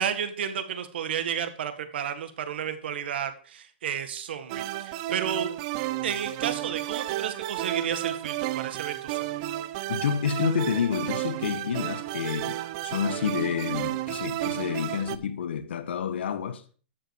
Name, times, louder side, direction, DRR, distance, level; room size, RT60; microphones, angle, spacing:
voice 1, 0.0-5.5 6.0-9.4, right 8 dB, 70° right, 1.9 m, -32 dB
sound 1, 4.5-15.2, right 14 dB, 40° right, 0.6 m, -32 dB
voice 2, 9.9-12.6 12.8-16.6, left 7 dB, 80° left, 1.5 m, -29 dB
13.0 x 7.6 x 4.9 m
hypercardioid pair, 155°, 6 cm